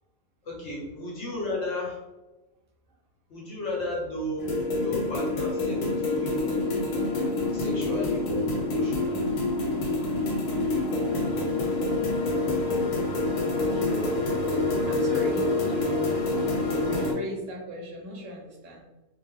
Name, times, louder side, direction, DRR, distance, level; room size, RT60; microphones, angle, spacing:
voice 1, 0.4-2.0 3.3-4.5 4.8-6.5 7.5-9.3, left 2 dB, 60° left, -4 dB, 0.9 m, -34 dB
sound 1, 4.4-17.1, left 2 dB, 85° left, 1.2 m, -27 dB
voice 2, 13.6-14.1 14.9-16.0 16.7-18.8, equal, 65° right, -2 dB, 0.8 m, -39 dB
2.5 x 2.1 x 3.5 m, 1.1 s
omnidirectional pair, 1.6 m